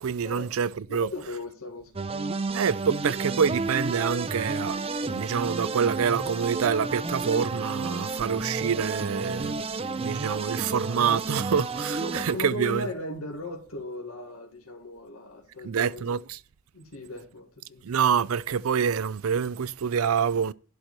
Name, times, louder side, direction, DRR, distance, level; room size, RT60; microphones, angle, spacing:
voice 1, 0.0-1.1 2.5-9.6 10.0-12.9 15.6-16.4 17.8-20.5, right 7 dB, 75° right, 0.4 m, -26 dB
voice 2, 0.9-1.9 12.0-16.2 16.7-17.8, left 1 dB, 85° left, 1.9 m, -37 dB
sound 1, 2.0-12.3, right 3 dB, 30° right, 0.6 m, -31 dB
12.0 x 4.6 x 6.7 m
head